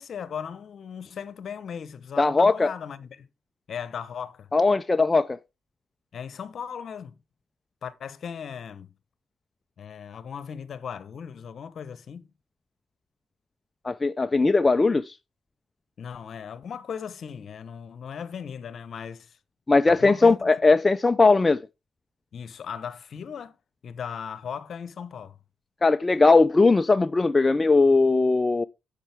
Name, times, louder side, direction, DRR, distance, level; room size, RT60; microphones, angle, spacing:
voice 1, 0.0-3.3 3.7-4.5 6.1-7.2 7.8-8.9 9.8-12.3 16.0-19.4 19.9-20.5 22.3-23.6 23.8-25.4, left 7 dB, 55° left, 1.0 m, -37 dB
voice 2, 2.2-2.7 4.5-5.4 13.8-15.1 19.7-21.6 25.8-28.6, left 3 dB, 20° left, 0.4 m, -19 dB
10.0 x 6.6 x 3.4 m
cardioid pair, 90°, 0 cm